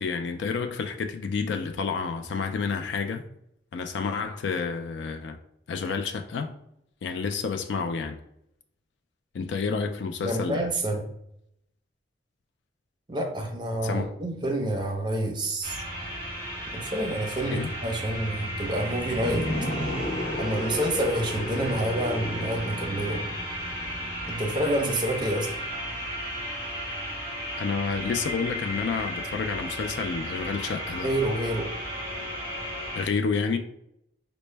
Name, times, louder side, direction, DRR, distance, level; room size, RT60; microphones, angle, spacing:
voice 1, 0.0-3.2 3.7-5.4 5.7-6.5 7.0-8.2 9.3-10.6 13.8-14.1 17.5-17.7 27.6-31.1 32.9-33.6, left 5 dB, 75° left, 0.4 m, -29 dB
voice 2, 10.2-11.0 13.1-15.8 16.7-19.5 20.4-23.2 24.3-25.6 31.0-31.7, right 1 dB, 25° right, 0.5 m, -28 dB
sound 1, 15.6-33.0, equal, 10° left, 1.3 m, -34 dB
sound 2, 19.1-24.1, left 1 dB, 45° left, 1.1 m, -33 dB
4.2 x 2.1 x 3.2 m
head